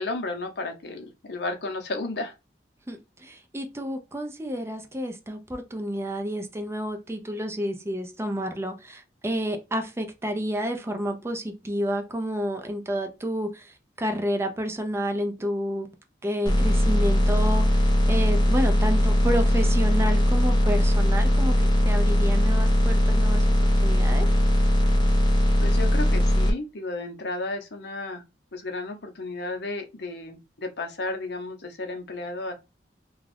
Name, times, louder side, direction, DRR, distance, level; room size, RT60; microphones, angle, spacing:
voice 1, 0.0-2.3 25.6-28.2 28.5-32.5, left 2 dB, 65° left, 0.7 m, -33 dB
voice 2, 2.9-15.9 16.2-24.3, equal, 15° right, 0.5 m, -30 dB
sound 1, 16.5-26.5, equal, 25° left, 0.6 m, -20 dB
2.5 x 2.3 x 3.2 m
head